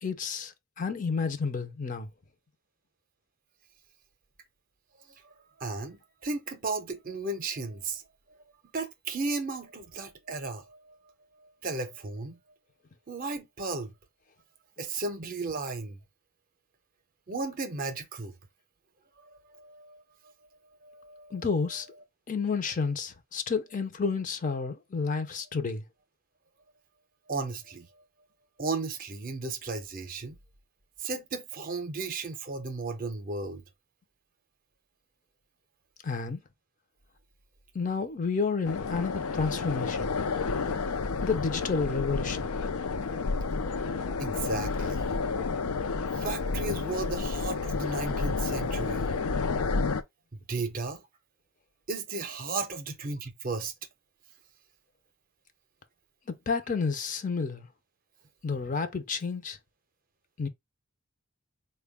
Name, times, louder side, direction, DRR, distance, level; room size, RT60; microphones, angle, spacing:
voice 1, 0.0-2.1 21.3-21.9 22.3-25.8 36.0-36.4 37.7-40.1 41.2-42.5 49.5-49.7 56.3-57.7 58.4-59.6 60.4-60.5, left 5 dB, 35° left, 0.5 m, -30 dB
voice 2, 5.6-8.0 8.7-11.0 11.4-12.4 13.1-13.9 14.8-16.0 17.3-18.3 19.2-20.0 20.8-21.5 27.3-27.9 28.6-30.4 31.0-33.6 44.2-45.1 46.2-49.2 50.5-51.0 51.9-53.7, right 3 dB, 40° right, 0.6 m, -35 dB
sound 1, 38.6-50.0, left 4 dB, 85° left, 0.5 m, -30 dB
4.4 x 2.2 x 3.4 m
head